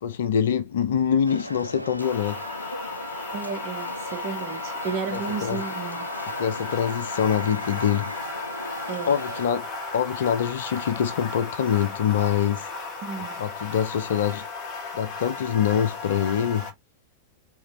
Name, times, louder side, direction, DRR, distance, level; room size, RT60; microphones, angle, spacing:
voice 1, 0.0-2.4 5.1-5.6 6.4-8.1 9.1-9.7 9.9-12.7 13.4-14.5 14.9-16.7, left 8 dB, 60° left, 0.5 m, -24 dB
sound 1, 1.3-9.5, equal, 90° right, 0.3 m, -37 dB
sound 2, 2.0-16.7, left 3 dB, 25° left, 1.8 m, -35 dB
voice 2, 3.3-6.1 8.9-9.2 13.0-13.4, right 6 dB, 40° right, 1.0 m, -33 dB
3.7 x 3.1 x 3.3 m
figure-of-eight pair, 90°, 0 cm